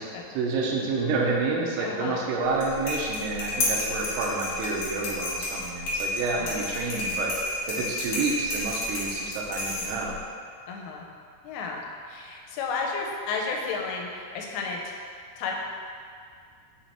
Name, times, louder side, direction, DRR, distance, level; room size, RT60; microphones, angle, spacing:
voice 1, 0.3-7.3 7.7-10.1, right 3 dB, 85° right, -2 dB, 2.3 m, -29 dB
voice 2, 1.8-2.2 6.4-6.7 10.7-11.1 11.4-15.0 15.4-15.5, left 4 dB, 90° left, 0 dB, 3.2 m, -32 dB
sound 1, 2.5-10.2, left 1 dB, 65° left, 2.1 m, -31 dB
7.3 x 3.0 x 4.2 m, 2.2 s
omnidirectional pair, 5.6 m